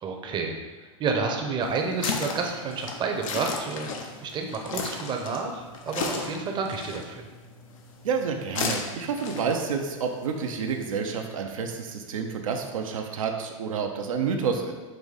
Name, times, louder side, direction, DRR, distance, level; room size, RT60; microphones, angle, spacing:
voice 1, 0.0-3.9 4.2-7.3, right 4 dB, 25° right, 2 dB, 0.6 m, -30 dB
sound 1, 1.6-11.3, left 4 dB, 75° left, 0.7 m, -36 dB
voice 2, 8.0-14.7, right 5 dB, 85° right, 3 dB, 0.6 m, -29 dB
4.9 x 2.6 x 3.9 m, 1.3 s
hypercardioid pair, 110°, 17 cm